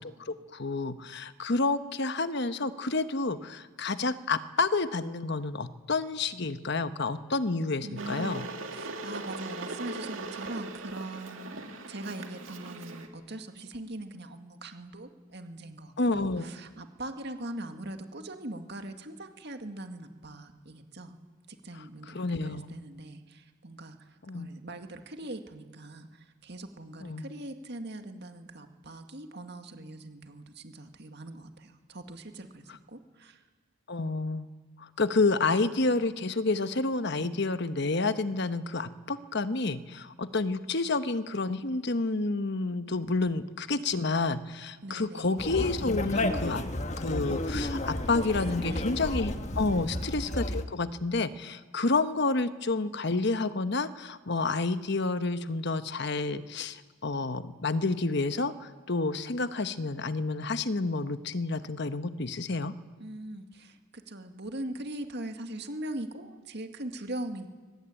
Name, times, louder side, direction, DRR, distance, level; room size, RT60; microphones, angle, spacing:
voice 1, 0.0-8.4 16.0-16.5 22.1-22.6 24.3-24.5 27.0-27.2 33.9-34.5 34.8-46.6 47.0-62.7, left 3 dB, 55° left, 11 dB, 1.1 m, -29 dB
voice 2, 7.8-21.2 21.5-24.1 24.3-33.4 44.8-45.3 48.2-49.1 49.5-50.0 63.0-67.5, right 1 dB, 50° right, 6 dB, 2.1 m, -41 dB
Water / Boiling, 8.0-13.1, right 2 dB, 70° right, 2.4 m, -40 dB
Conversation, 45.4-50.7, left 1 dB, 35° left, 1.4 m, -32 dB
23.0 x 20.0 x 9.1 m, 1.3 s
head